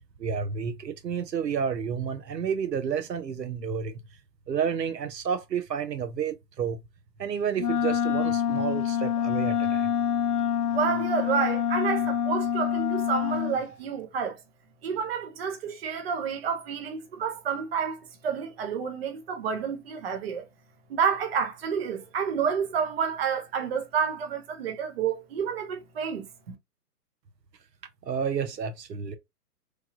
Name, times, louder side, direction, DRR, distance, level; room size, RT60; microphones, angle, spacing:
voice 1, 0.2-4.0 4.5-6.8 7.2-9.9 28.0-29.2, right 7 dB, 85° right, 0.6 m, -30 dB
Wind instrument woodwind instrument, 7.6-13.6, left 9 dB, 65° left, 0.5 m, -26 dB
voice 2, 10.7-14.4 14.8-20.5 20.9-26.3, right 6 dB, 40° right, 0.7 m, -29 dB
3.1 x 2.2 x 2.5 m
figure-of-eight pair, 125°, 48 cm